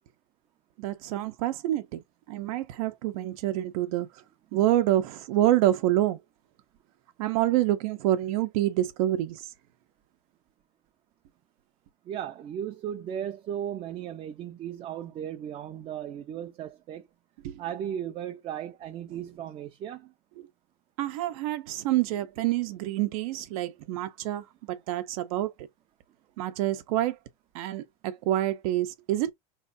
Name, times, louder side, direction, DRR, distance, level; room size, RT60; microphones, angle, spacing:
voice 1, 0.8-2.0 2.3-4.1 4.5-6.2 7.2-9.5 17.4-17.6 21.0-25.7 26.4-27.2 27.5-29.3, right 14 dB, 70° right, 0.8 m, -27 dB
voice 2, 12.1-17.0 17.6-20.1, right 9 dB, 30° right, 0.5 m, -36 dB
4.5 x 3.2 x 2.6 m
supercardioid pair, 160°, 19 cm